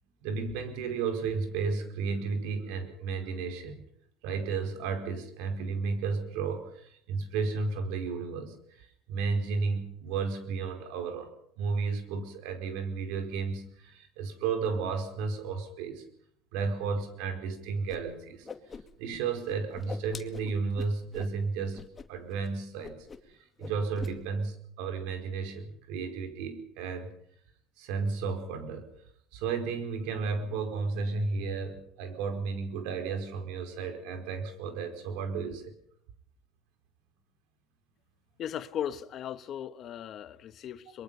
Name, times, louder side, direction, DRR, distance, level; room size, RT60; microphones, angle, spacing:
voice 1, 0.2-3.9 4.2-11.3 11.6-16.0 16.5-18.5 19.0-23.1 23.6-27.1 27.8-28.9 29.3-35.7, right 4 dB, 75° right, 4.8 m, -33 dB
Whoosh swoosh swish, 17.9-18.0 18.3-19.2 19.4-21.3 21.7-22.1 22.3-22.5 22.8-23.3 23.6-24.1, left 5 dB, 25° left, 2.2 m, -43 dB
voice 2, 38.4-41.0, left 9 dB, 50° left, 1.3 m, -37 dB
23.5 x 23.0 x 5.7 m
supercardioid pair, 100°, 0 cm